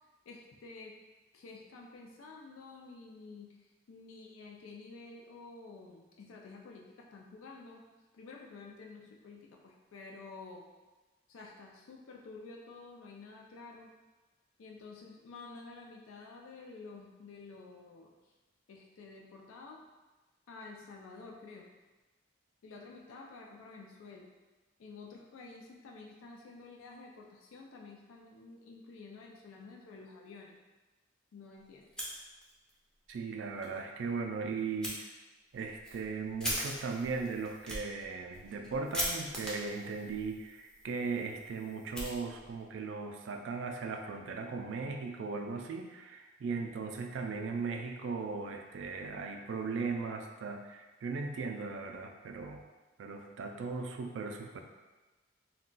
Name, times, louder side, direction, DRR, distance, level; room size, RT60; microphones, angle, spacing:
voice 1, 0.3-1.0 1.3-7.8 8.1-10.7 11.3-13.9 14.6-18.1 18.7-19.8 20.5-21.7 22.6-24.3 24.8-30.6 31.3-31.9, left 3 dB, 90° left, -1 dB, 0.4 m, -50 dB
Fire, 31.8-32.7 33.1-33.2 33.6-33.7 34.8-35.0 35.5-42.7, equal, 5° left, 0.4 m, -41 dB
voice 2, 33.1-35.0 35.5-52.6 53.0-54.6, right 4 dB, 65° right, 4 dB, 0.3 m, -38 dB
2.3 x 2.2 x 3.7 m, 1.2 s
head